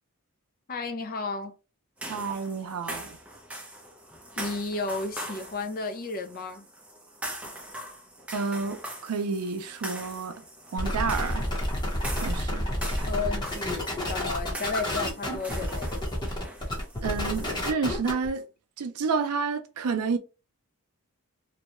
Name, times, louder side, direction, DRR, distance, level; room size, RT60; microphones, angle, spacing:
voice 1, 0.7-1.5 4.4-6.6 13.0-15.9, left 3 dB, 40° left, 0.5 m, -33 dB
sound 1, 2.0-17.7, right 1 dB, 5° right, 0.6 m, -42 dB
voice 2, 2.1-3.2 8.3-10.4 10.7-11.5 12.2-12.7 17.0-18.4 18.8-20.2, right 5 dB, 90° right, 0.5 m, -30 dB
sound 2, 10.8-18.3, left 1 dB, 20° left, 0.9 m, -30 dB
2.6 x 2.2 x 3.0 m
head